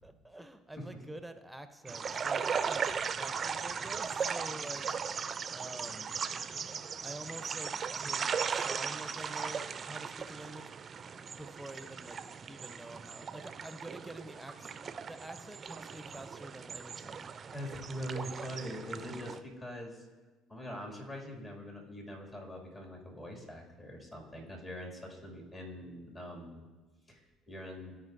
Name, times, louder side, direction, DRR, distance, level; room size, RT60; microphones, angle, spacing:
voice 1, 0.0-4.9 5.5-6.1 7.0-10.7 11.3-14.7 15.1-17.3, right 1 dB, 5° right, 9 dB, 0.7 m, -48 dB
sound 1, 1.9-19.4, right 6 dB, 40° right, 0.4 m, -38 dB
voice 2, 17.5-20.1 20.5-26.6 27.1-27.9, equal, 30° left, -1 dB, 2.3 m, -43 dB
14.0 x 5.1 x 2.6 m, 1.2 s
hypercardioid pair, 65°, 0 cm